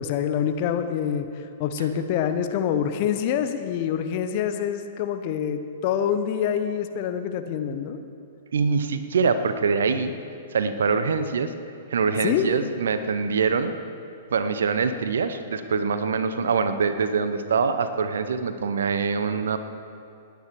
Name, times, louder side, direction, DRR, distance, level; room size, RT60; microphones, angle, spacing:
voice 1, 0.0-8.0 12.2-12.5, left 8 dB, 45° left, 9 dB, 0.9 m, -26 dB
voice 2, 8.5-10.1 10.5-11.5 11.9-13.7 14.3-19.6, right 5 dB, 70° right, 10 dB, 0.8 m, -24 dB
19.0 x 9.2 x 4.6 m, 2.5 s
figure-of-eight pair, 110°, 0 cm